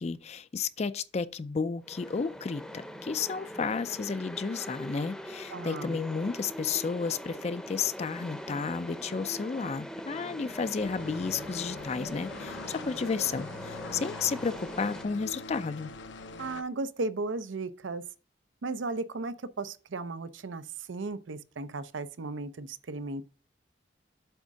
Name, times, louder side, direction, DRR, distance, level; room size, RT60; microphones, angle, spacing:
voice 1, 0.0-2.6 3.0-15.9, left 5 dB, 35° left, 0.4 m, -32 dB
sound 1, 1.8-15.0, equal, 5° left, 0.7 m, -42 dB
voice 2, 5.5-6.0 16.4-18.0 18.6-23.2, right 3 dB, 85° right, 0.6 m, -35 dB
sound 2, 10.8-16.6, left 3 dB, 70° left, 0.6 m, -43 dB
8.0 x 3.6 x 6.2 m
head